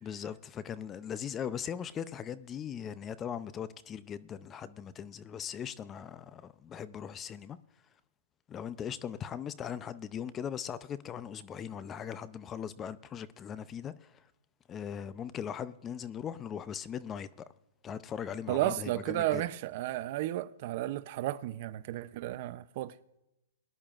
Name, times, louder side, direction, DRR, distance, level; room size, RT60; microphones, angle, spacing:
voice 1, 0.0-7.6 8.5-14.1 14.7-17.5 17.8-19.4, left 8 dB, 20° left, 0.5 m, -39 dB
voice 2, 18.5-22.9, right 15 dB, 45° right, 0.5 m, -33 dB
22.0 x 10.5 x 2.5 m
hypercardioid pair, 145°, 0 cm